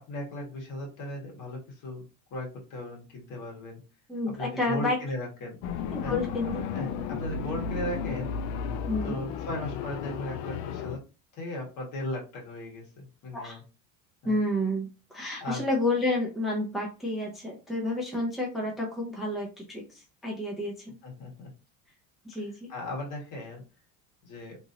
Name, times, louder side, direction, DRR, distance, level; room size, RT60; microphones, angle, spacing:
voice 1, 0.1-2.0 2.3-3.8 4.4-5.6 6.0-6.1 6.5-8.3 9.0-11.0 11.3-13.6 14.2-14.4 15.4-15.6 21.0-21.5 22.7-23.6 24.2-24.6, left 1 dB, 55° left, -1 dB, 1.5 m, -37 dB
voice 2, 4.1-5.0 5.9-6.6 8.9-9.2 13.3-13.6 14.2-21.0 22.2-22.7, left 1 dB, ahead, -1 dB, 0.5 m, -30 dB
sound 1, 5.6-11.0, left 6 dB, 75° left, 0.5 m, -33 dB
3.0 x 2.5 x 2.7 m, 0.32 s
cardioid pair, 130°, 38 cm